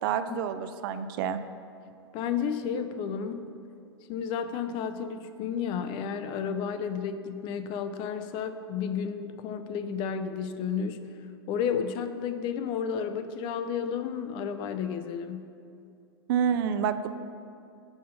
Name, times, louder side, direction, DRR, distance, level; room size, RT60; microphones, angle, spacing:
voice 1, 0.0-1.4 16.3-17.1, right 8 dB, 55° right, 11 dB, 0.4 m, -28 dB
voice 2, 2.1-3.4 4.1-11.0 11.5-15.5, left 7 dB, 35° left, 9 dB, 0.4 m, -32 dB
5.6 x 4.2 x 5.3 m, 2.5 s
hypercardioid pair, 105°, 14 cm